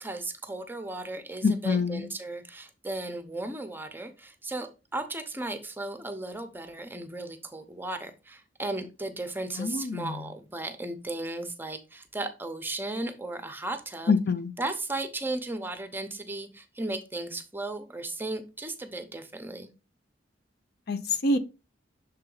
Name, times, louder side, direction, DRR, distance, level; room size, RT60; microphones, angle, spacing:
voice 1, 0.0-14.1 14.6-19.7, right 2 dB, 10° right, 0.8 m, -35 dB
voice 2, 1.4-2.1 9.6-10.2 14.1-14.5 20.9-21.4, left 3 dB, 60° left, 0.6 m, -26 dB
6.7 x 4.0 x 3.9 m
head